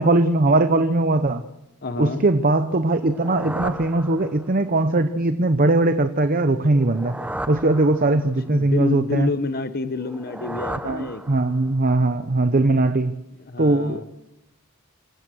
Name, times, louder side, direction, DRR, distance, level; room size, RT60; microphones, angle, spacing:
voice 1, 0.0-1.4 2.0-7.2 7.5-9.3 10.8-13.2 13.6-14.1, right 2 dB, 40° right, 10 dB, 0.8 m, -20 dB
voice 2, 1.8-2.2 8.1-8.2 8.5-11.2 12.7-12.9 13.5-14.1, left 3 dB, 45° left, 10 dB, 0.8 m, -28 dB
sound 1, 2.9-4.7 6.6-8.5 9.9-11.8, right 1 dB, 5° right, 0.8 m, -35 dB
27.0 x 16.0 x 6.3 m, 0.89 s
head